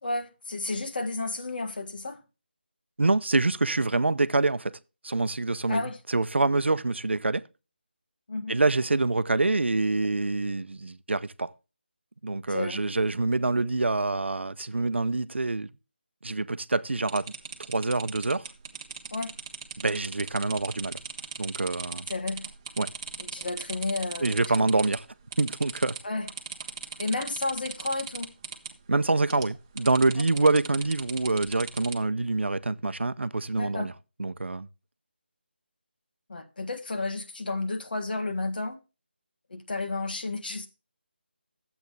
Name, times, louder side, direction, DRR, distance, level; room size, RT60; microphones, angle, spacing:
voice 1, 0.0-2.2 5.7-6.0 8.3-8.5 12.5-12.8 19.1-19.3 22.1-22.4 23.2-24.4 26.0-26.3 27.0-28.3 33.6-33.9 36.3-38.8 39.5-40.7, left 2 dB, 55° left, 1.6 m, -32 dB
voice 2, 3.0-4.7 5.0-7.4 8.5-11.5 12.2-15.7 16.2-17.3 17.7-18.5 19.8-21.0 21.4-22.1 22.8-22.9 24.2-25.1 25.4-26.0 28.9-33.9 34.2-34.7, right 3 dB, 85° right, 0.7 m, -26 dB
sound 1, 17.1-25.0 25.3-26.0 26.3-28.7 29.3-29.5 29.8-31.9, right 6 dB, 20° right, 1.0 m, -38 dB
10.5 x 8.1 x 3.2 m
figure-of-eight pair, 170°, 6 cm